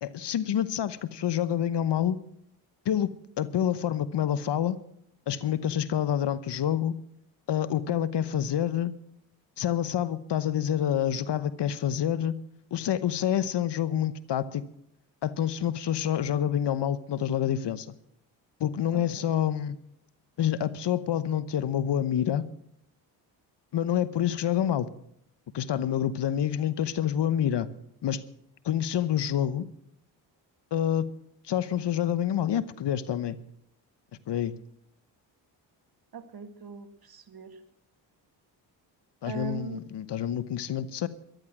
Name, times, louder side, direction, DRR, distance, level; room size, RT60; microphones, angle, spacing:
voice 1, 0.0-2.2 2.8-4.8 5.3-6.9 7.5-8.9 9.6-12.3 12.7-14.6 15.2-17.9 18.6-19.8 20.4-22.4 23.7-24.9 25.5-27.7 28.0-28.2 28.6-29.7 30.7-31.1 31.4-33.4 34.3-34.5 39.2-41.1, left 10 dB, 55° left, 16 dB, 1.0 m, -27 dB
voice 2, 18.9-19.3 36.1-37.6 39.2-39.8, right 7 dB, 45° right, 9 dB, 2.1 m, -40 dB
14.0 x 12.0 x 6.1 m, 0.73 s
supercardioid pair, 50°, 49 cm